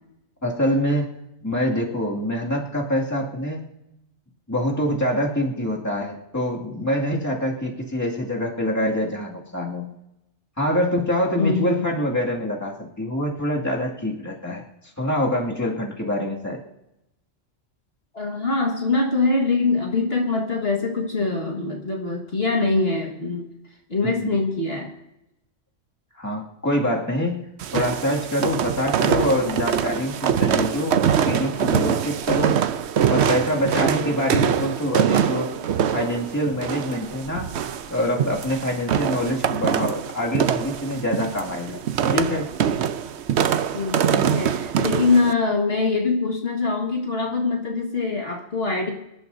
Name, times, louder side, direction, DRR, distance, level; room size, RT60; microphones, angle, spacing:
voice 1, 0.4-1.1 1.4-3.6 4.5-9.9 10.6-14.6 15.0-16.6 24.0-24.2 26.2-32.6 33.1-35.5 35.9-37.6 37.9-41.8 42.1-42.5, left 1 dB, 15° left, -2 dB, 2.2 m, -25 dB
voice 2, 11.4-11.8 18.1-23.5 23.9-24.9 43.7-48.9, left 3 dB, 50° left, 0 dB, 1.9 m, -23 dB
sound 1, 27.6-45.3, right 8 dB, 65° right, 0.9 m, -24 dB
25.0 x 11.5 x 2.7 m, 0.89 s
omnidirectional pair, 1.3 m